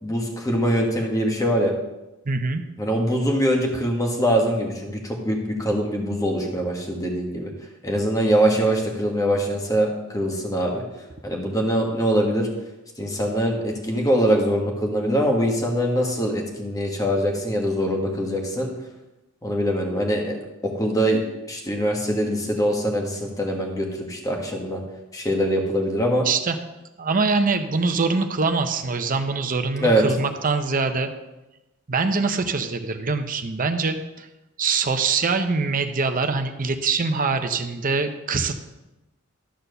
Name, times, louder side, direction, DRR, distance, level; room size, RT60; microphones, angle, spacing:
voice 1, 0.0-1.7 2.8-7.5 7.8-10.8 11.2-12.5 13.0-18.7 19.4-20.4 20.6-21.2 21.5-24.8 25.1-26.3 29.8-30.0, equal, 15° left, 0 dB, 1.4 m, -23 dB
voice 2, 2.2-2.6 26.2-26.6 27.0-31.1 31.9-34.3 34.6-38.6, right 4 dB, 40° right, 7 dB, 0.7 m, -23 dB
12.5 x 4.4 x 6.7 m, 1.0 s
head